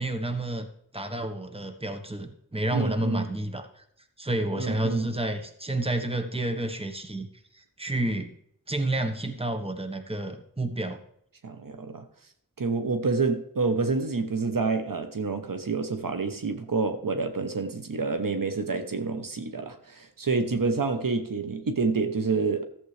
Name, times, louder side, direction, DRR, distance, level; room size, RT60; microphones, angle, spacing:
voice 1, 0.0-3.8 4.2-7.3 7.5-8.3 8.7-11.0, right 1 dB, 15° right, 1.2 m, -30 dB
voice 2, 2.7-3.3 4.6-5.1 11.4-12.0 12.6-22.7, right 4 dB, 70° right, 1.0 m, -28 dB
13.5 x 7.5 x 3.3 m
wide cardioid pair, 55°, 34 cm